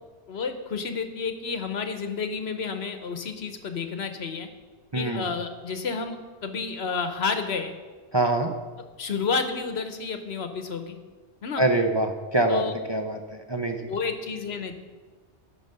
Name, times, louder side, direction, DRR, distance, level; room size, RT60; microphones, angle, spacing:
voice 1, 0.3-4.5 4.9-6.2 6.4-7.7 9.0-11.0 11.4-11.6 12.5-12.7 13.9-14.8, left 5 dB, 65° left, 7 dB, 1.2 m, -30 dB
voice 2, 4.9-5.3 8.1-8.5 11.6-12.6 12.9-13.9, right 2 dB, 30° right, 3 dB, 0.7 m, -24 dB
13.0 x 6.0 x 6.7 m, 1.4 s
omnidirectional pair, 1.1 m